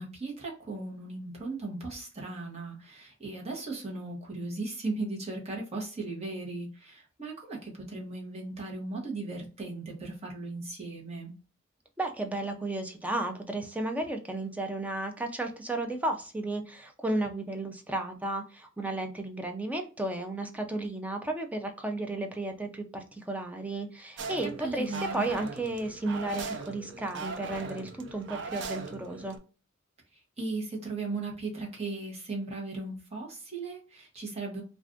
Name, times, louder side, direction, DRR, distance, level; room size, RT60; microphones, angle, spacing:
voice 1, 0.0-11.3 24.4-25.2 30.4-34.6, right 3 dB, 35° right, -2 dB, 0.9 m, -37 dB
voice 2, 12.0-29.4, right 2 dB, 10° right, 4 dB, 0.4 m, -33 dB
sound 1, 24.2-29.4, right 4 dB, 65° right, 0.4 m, -39 dB
2.4 x 2.4 x 3.5 m, 0.35 s
head